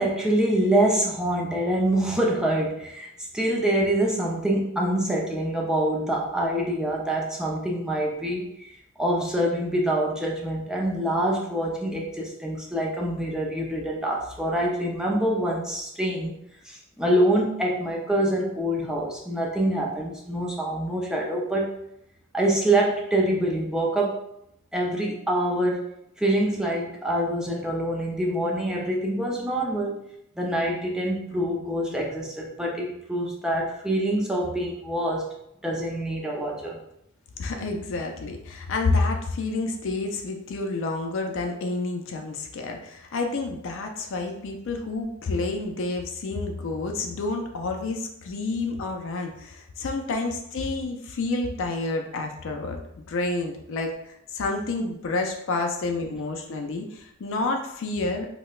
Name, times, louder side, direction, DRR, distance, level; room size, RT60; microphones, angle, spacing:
voice 1, 0.0-16.4 16.6-21.8 22.3-24.2 24.7-25.9 26.2-30.0 30.4-35.3 35.6-36.8, right 1 dB, 5° right, -2 dB, 0.4 m, -25 dB
voice 2, 37.4-58.3, left 3 dB, 60° left, 3 dB, 0.4 m, -29 dB
4.9 x 2.1 x 2.3 m, 0.78 s
head